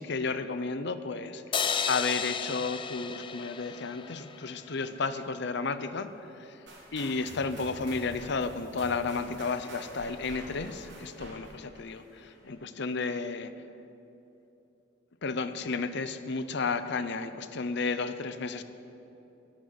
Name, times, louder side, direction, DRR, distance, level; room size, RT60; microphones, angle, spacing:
voice 1, 0.0-6.1 6.4-6.6 6.9-13.5 15.2-18.6, left 4 dB, 65° left, 12 dB, 0.7 m, -32 dB
sound 1, 1.5-4.8, left 6 dB, 25° left, 0.5 m, -33 dB
sound 2, 6.7-12.5, right 1 dB, 65° right, 4.0 m, -47 dB
10.5 x 10.5 x 9.6 m, 2.9 s
head